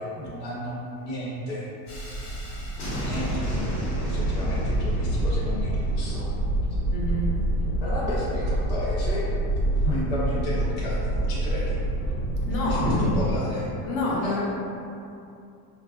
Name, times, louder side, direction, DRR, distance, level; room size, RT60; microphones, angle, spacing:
voice 1, 0.0-1.7 2.9-6.3 7.7-9.3 9.8-11.8 12.4-13.7 14.2-14.4, equal, 25° left, -8 dB, 0.6 m, -33 dB
Thunderstorm, 1.9-13.4, right 1 dB, 45° left, 0.9 m, -27 dB
voice 2, 6.9-7.4 12.4-13.2 13.8-14.4, left 1 dB, 75° left, -4 dB, 1.1 m, -26 dB
5.0 x 2.4 x 2.3 m, 2.6 s
supercardioid pair, 150°, 46 cm